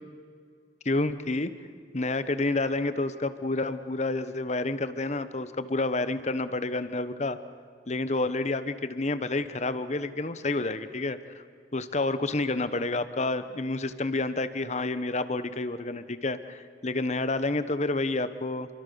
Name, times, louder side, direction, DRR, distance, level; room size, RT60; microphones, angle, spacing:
voice 1, 0.8-1.5 1.9-7.4 7.9-11.4 11.7-18.7, left 2 dB, 40° left, 12 dB, 1.1 m, -29 dB
29.0 x 23.5 x 7.0 m, 2.2 s
head